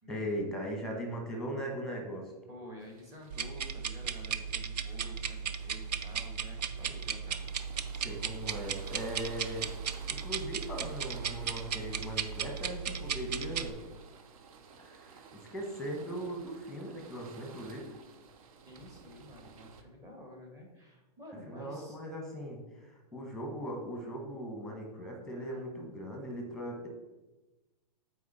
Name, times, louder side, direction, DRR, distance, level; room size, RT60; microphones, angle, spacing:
voice 1, 0.1-2.3 8.0-9.7 10.1-13.8 14.8-17.9 21.5-26.9, equal, ahead, 1 dB, 1.4 m, -39 dB
voice 2, 2.5-7.4 7.7-8.2 18.6-22.0, left 1 dB, 15° right, 1 dB, 1.5 m, -51 dB
sound 1, 2.8-19.8, right 5 dB, 60° right, 0.8 m, -54 dB
sound 2, 3.3-13.7, right 7 dB, 90° right, 0.5 m, -36 dB
8.4 x 4.4 x 4.3 m, 1.1 s
hypercardioid pair, 145°, 20 cm